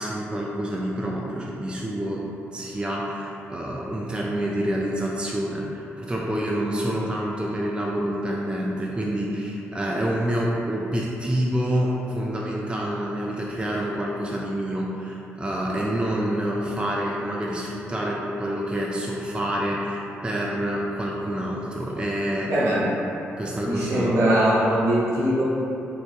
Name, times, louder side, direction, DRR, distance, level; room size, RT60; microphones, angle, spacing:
voice 1, 0.0-22.5 23.4-24.2, right 1 dB, 15° right, -3 dB, 0.3 m, -27 dB
voice 2, 22.4-22.9 23.6-25.4, right 1 dB, 65° right, -9 dB, 0.9 m, -21 dB
3.1 x 2.1 x 2.5 m, 2.9 s
hypercardioid pair, 45°, 6 cm